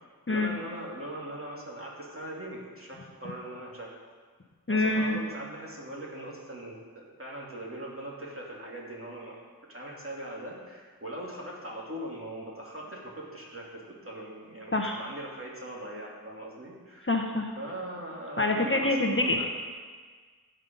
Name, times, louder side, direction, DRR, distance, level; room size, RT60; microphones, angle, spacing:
voice 1, 0.3-3.9 4.7-9.4 9.7-17.1 17.6-19.5, right 1 dB, 35° right, -4 dB, 2.8 m, -40 dB
voice 2, 4.7-5.2 14.7-15.0 17.1-17.5 18.4-19.5, left 2 dB, 30° left, 2 dB, 0.9 m, -26 dB
15.5 x 5.5 x 5.4 m, 1.5 s
wide cardioid pair, 40°, 38 cm